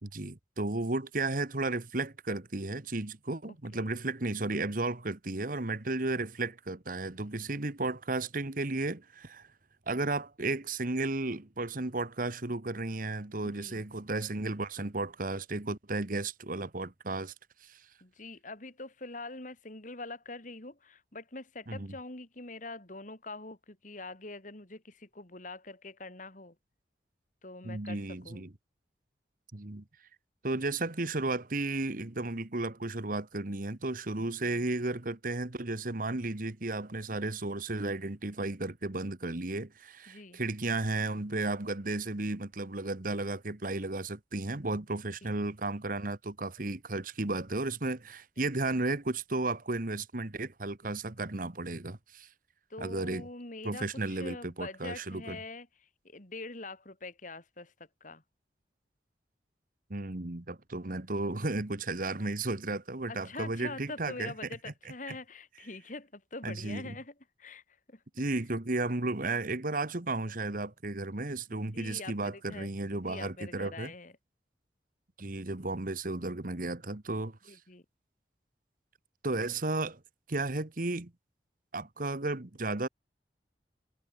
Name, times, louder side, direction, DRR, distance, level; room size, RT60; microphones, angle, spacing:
voice 1, 0.0-9.5 9.9-17.3 17.6-17.8 21.7-21.9 27.6-28.5 29.5-29.8 30.4-52.3 52.8-53.3 53.6-55.4 59.9-64.3 65.1-65.2 66.4-66.9 68.2-73.9 75.2-77.6 79.2-80.0 80.3-81.1 81.7-82.9, right 2 dB, 50° right, 1.5 m, -34 dB
voice 2, 13.4-13.8 18.0-26.5 27.4-28.4 34.2-34.6 40.1-40.4 45.2-45.3 48.4-48.8 52.7-57.7 58.0-58.2 63.1-68.0 71.5-72.7 73.1-74.1 77.5-77.8, left 3 dB, 45° left, 3.0 m, -44 dB
head